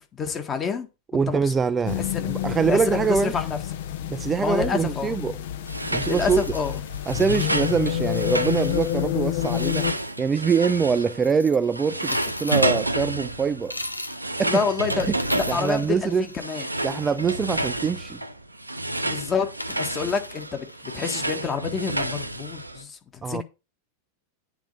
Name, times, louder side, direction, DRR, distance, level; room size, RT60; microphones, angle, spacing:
voice 1, 0.1-1.5 2.1-2.3 2.7-3.6 4.4-5.2 6.1-6.8 14.4-15.1 15.5-16.6 19.0-19.5 19.7-23.4, left 5 dB, 20° left, 1.6 m, -28 dB
voice 2, 1.1-3.4 4.1-5.4 5.9-6.4 7.1-9.9 10.2-13.8 14.4-14.6 15.0-15.1 15.5-16.3 16.8-18.2 23.2-23.4, right 6 dB, 20° right, 0.3 m, -24 dB
sound 1, 1.9-9.9, left 13 dB, 55° left, 0.8 m, -28 dB
sound 2, 5.7-11.4 11.7-22.8, right 1 dB, 85° right, 0.7 m, -30 dB
sound 3, 6.0-8.2 9.4-10.3 11.2-13.0 13.6-14.3 14.7-17.5 19.0-19.1 19.6-20.9, left 1 dB, 85° left, 0.6 m, -39 dB
9.1 x 4.0 x 7.1 m
figure-of-eight pair, 90°, 0 cm